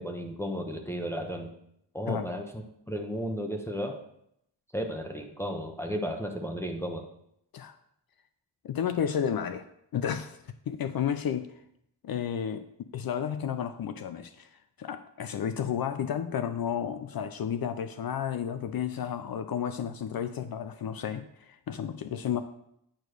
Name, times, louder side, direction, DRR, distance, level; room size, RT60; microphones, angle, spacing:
voice 1, 0.0-1.5 1.9-4.0 4.7-7.1, equal, 5° left, 2 dB, 0.9 m, -34 dB
voice 2, 8.6-9.7 9.9-11.5 12.0-12.6 12.9-22.4, left 8 dB, 60° left, 10 dB, 0.6 m, -32 dB
8.9 x 3.1 x 6.4 m, 0.75 s
cardioid pair, 85°, 42 cm